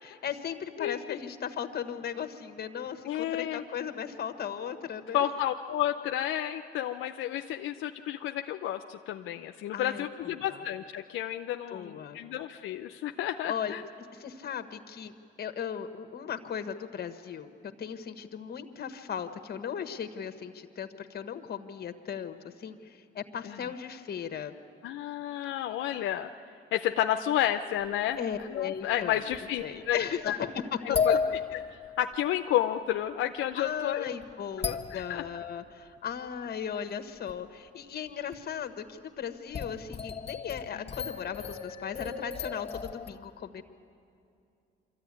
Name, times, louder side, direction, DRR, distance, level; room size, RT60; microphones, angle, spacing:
voice 1, 0.0-5.2 9.7-10.6 11.7-12.2 13.5-13.7 14.1-15.1 15.4-17.5 17.8-24.5 28.2-29.3 29.6-31.2 33.5-43.6, left 8 dB, 55° left, 9 dB, 1.4 m, -37 dB
voice 2, 0.8-1.2 3.1-3.6 5.1-13.8 23.4-23.6 24.8-26.3 26.7-28.2 28.5-30.0 30.2-30.5 30.8-31.2 32.0-34.1 34.6-35.2 40.8-40.9, left 12 dB, 85° left, 6 dB, 0.6 m, -31 dB
sound 1, 28.3-28.4 29.0-29.9 30.9-32.3 33.7-33.8 34.2-34.3 34.6-35.3 37.3-37.4 38.3-38.4 39.5-43.1, left 5 dB, 30° left, 1.6 m, -33 dB
25.0 x 14.0 x 9.8 m, 2.5 s
cardioid pair, 90°, 20 cm